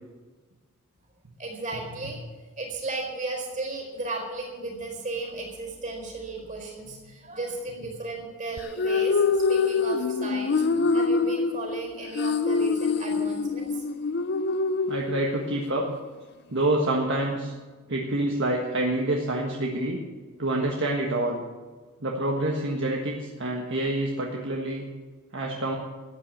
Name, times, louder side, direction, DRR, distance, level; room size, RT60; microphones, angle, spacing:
voice 1, 1.4-2.2 2.6-13.8, right 3 dB, 35° right, 1 dB, 4.5 m, -35 dB
sound 1, 8.6-15.6, left 4 dB, 50° left, 0.5 m, -25 dB
voice 2, 14.9-15.8 16.5-17.5 17.9-20.0 20.4-21.4 22.0-24.8 25.3-25.8, right 1 dB, 55° right, 0 dB, 1.5 m, -27 dB
13.5 x 9.2 x 8.5 m, 1.3 s
head